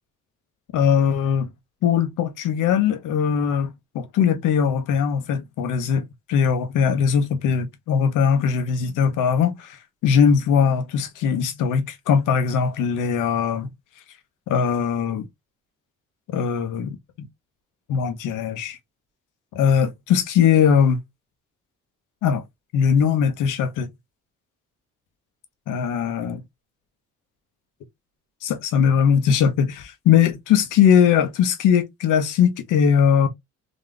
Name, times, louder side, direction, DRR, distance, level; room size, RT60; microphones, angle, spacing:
voice 1, 0.7-1.5 1.8-9.8 10.0-13.7 14.5-15.3 16.3-17.3 17.9-18.8 19.5-21.0 22.2-22.4 22.7-23.9 25.7-26.4 28.4-33.3, left 7 dB, 90° left, 1.1 m, -20 dB
4.0 x 3.1 x 3.3 m
cardioid pair, 90°, 30 cm